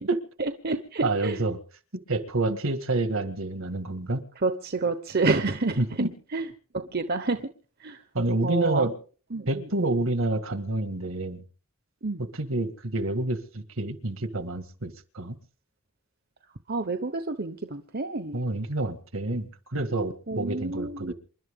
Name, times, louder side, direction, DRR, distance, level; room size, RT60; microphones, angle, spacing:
voice 1, 0.4-1.4 2.5-2.6 4.4-5.8 6.3-6.5 6.7-7.4 7.8-8.0 8.4-8.9 9.3-9.7 12.0-12.2 16.7-18.4 20.3-21.1, right 3 dB, 45° right, 1.0 m, -29 dB
voice 2, 1.0-1.6 1.9-4.2 5.8-6.1 8.1-8.9 9.5-11.4 12.2-15.4 18.3-21.1, right 2 dB, 65° right, 1.9 m, -28 dB
28.0 x 12.0 x 3.7 m
head